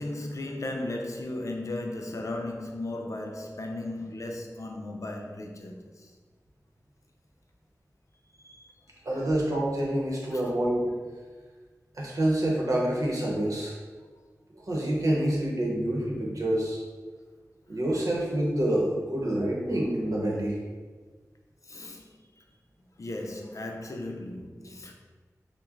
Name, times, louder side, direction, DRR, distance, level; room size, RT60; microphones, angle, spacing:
voice 1, 0.0-6.1 8.4-8.7 10.3-10.4 21.6-22.1 23.0-24.9, left 2 dB, 60° left, 0.5 m, -36 dB
voice 2, 9.0-10.9 11.9-13.8 14.7-16.8 17.7-20.5, right 1 dB, 65° right, 0.9 m, -27 dB
6.0 x 2.1 x 2.5 m
wide cardioid pair, 55°, 6 cm